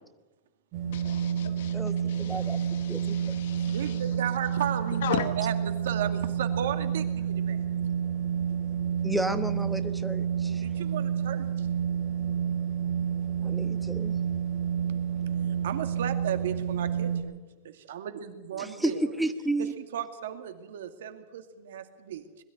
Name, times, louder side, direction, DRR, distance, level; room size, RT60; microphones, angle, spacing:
sound 1, 0.7-17.2, right 8 dB, 40° right, 5.5 m, -29 dB
voice 1, 0.9-4.2 5.0-5.3, left 11 dB, 75° left, 1.1 m, -37 dB
voice 2, 1.7-2.6 2.9-3.2 9.0-10.6 13.4-14.1 18.6-19.7, right 1 dB, ahead, 1.0 m, -32 dB
voice 3, 3.7-7.6 10.6-11.5 15.6-17.4 17.6-19.0 19.6-22.2, right 10 dB, 90° right, 2.3 m, -35 dB
21.5 x 13.0 x 9.3 m
supercardioid pair, 165°, 0 cm